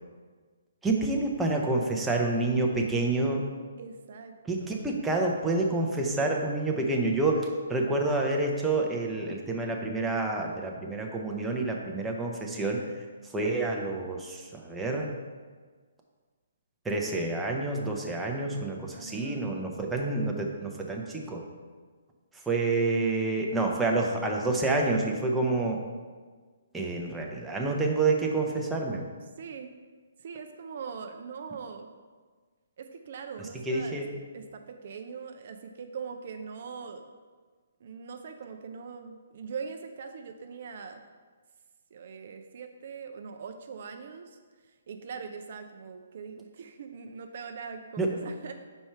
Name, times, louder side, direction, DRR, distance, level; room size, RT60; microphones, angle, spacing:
voice 1, 0.8-3.4 4.5-12.8 13.3-15.2 16.8-21.4 22.5-25.8 26.7-29.1 33.7-34.2 48.0-48.1, right 2 dB, 5° right, 0 dB, 0.7 m, -28 dB
voice 2, 3.8-4.3 4.6-4.8 18.9-19.5 29.4-29.7 30.2-31.9 32.8-34.0 34.3-37.0 37.8-41.0 41.9-44.4 44.9-48.5, right 5 dB, 55° right, 6 dB, 0.4 m, -41 dB
5.4 x 4.5 x 4.5 m, 1.5 s
hypercardioid pair, 140°, 0 cm